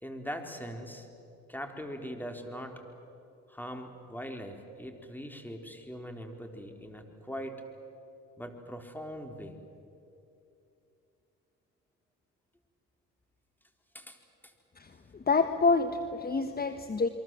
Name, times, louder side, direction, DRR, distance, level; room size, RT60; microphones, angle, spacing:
voice 1, 0.0-1.1 1.5-2.8 3.5-7.6 8.4-9.6 13.9-14.2 14.4-14.5, equal, 5° left, 4 dB, 3.9 m, -41 dB
voice 2, 14.8-17.1, left 4 dB, 30° left, 9 dB, 1.3 m, -28 dB
28.5 x 23.5 x 7.7 m, 2.7 s
supercardioid pair, 65°, 30 cm